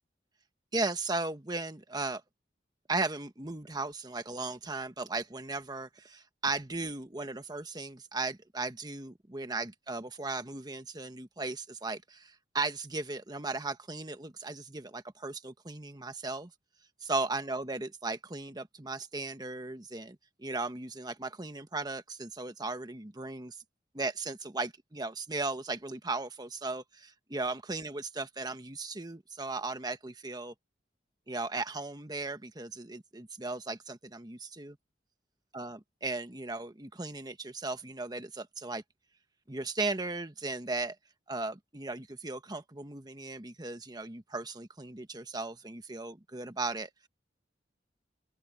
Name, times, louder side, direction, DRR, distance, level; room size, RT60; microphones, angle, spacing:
voice 1, 0.7-2.2 2.9-16.5 17.0-23.6 23.9-30.5 31.3-34.8 35.5-38.8 39.5-40.9 41.3-47.1, right 3 dB, 25° right, 1.3 m, -36 dB
open air
head